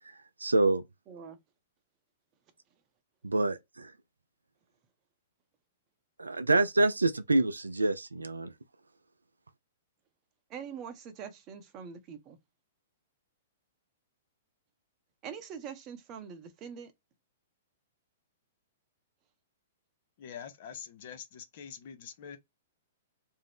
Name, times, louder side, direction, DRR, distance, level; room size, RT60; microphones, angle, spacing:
voice 1, 0.4-0.8 3.2-3.9 6.2-8.5, right 2 dB, 90° right, 0.3 m, -26 dB
voice 2, 1.1-1.4 10.5-12.4 15.2-16.9, right 7 dB, 35° right, 0.7 m, -43 dB
voice 3, 20.2-22.4, left 8 dB, 55° left, 0.6 m, -45 dB
2.6 x 2.0 x 3.3 m
hypercardioid pair, 115°, 0 cm